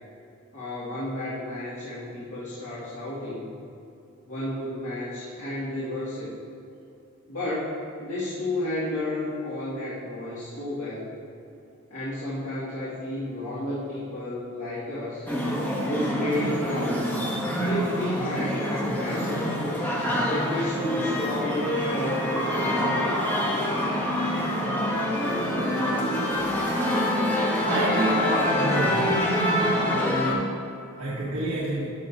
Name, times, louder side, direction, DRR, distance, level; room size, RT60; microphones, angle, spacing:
voice 1, 0.5-3.4 4.3-6.3 7.3-11.1 11.9-15.2 15.8-17.1 17.6-19.6 20.2-23.2, left 1 dB, 85° left, -10 dB, 2.1 m, -32 dB
sound 1, 15.3-30.3, equal, 10° left, 1.1 m, -26 dB
voice 2, 27.7-29.1 31.0-31.9, right 1 dB, 90° right, -8 dB, 1.6 m, -28 dB
13.0 x 6.4 x 2.8 m, 2.7 s
head